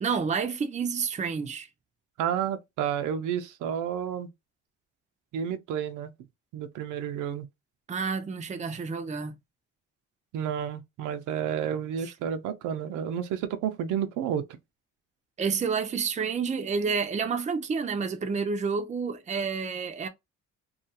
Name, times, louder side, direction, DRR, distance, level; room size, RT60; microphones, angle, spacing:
voice 1, 0.0-1.7 7.9-9.3 12.0-12.1 15.4-20.1, right 5 dB, 25° right, 0.5 m, -29 dB
voice 2, 2.2-4.3 5.3-6.1 6.5-7.5 10.3-14.4, right 8 dB, 80° right, 0.5 m, -30 dB
2.3 x 2.3 x 2.8 m
cardioid pair, 90°, 30 cm